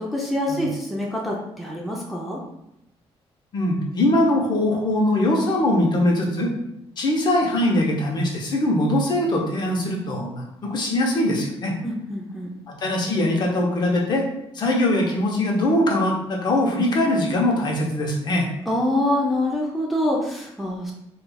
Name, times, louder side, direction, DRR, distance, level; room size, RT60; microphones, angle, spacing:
voice 1, 0.0-2.4 11.8-12.5 18.7-20.9, left 1 dB, ahead, -2 dB, 0.4 m, -25 dB
voice 2, 3.5-6.5 7.0-11.7 12.7-14.2 14.5-18.5, left 1 dB, 45° left, -1 dB, 0.7 m, -22 dB
4.8 x 2.3 x 2.2 m, 0.80 s
cardioid pair, 155°, 11 cm